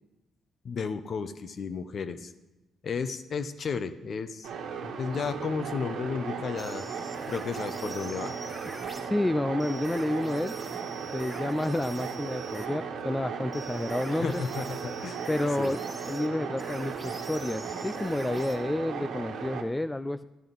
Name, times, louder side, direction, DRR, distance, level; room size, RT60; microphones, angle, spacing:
voice 1, 0.6-2.3 2.8-4.5 4.8-6.8 7.3-8.4 14.1-15.3 15.6-15.8, left 5 dB, 50° left, 11 dB, 0.7 m, -33 dB
sound 1, 4.4-19.6, right 6 dB, 85° right, 1.4 m, -36 dB
sound 2, 6.6-9.1 9.6-12.7 13.5-18.6, right 2 dB, 15° right, 1.7 m, -46 dB
voice 2, 9.0-10.5 11.1-14.4 15.3-15.8 16.1-20.2, left 1 dB, 10° left, 11 dB, 0.3 m, -30 dB
12.5 x 10.5 x 3.9 m, 1.0 s
cardioid pair, 90°, 0 cm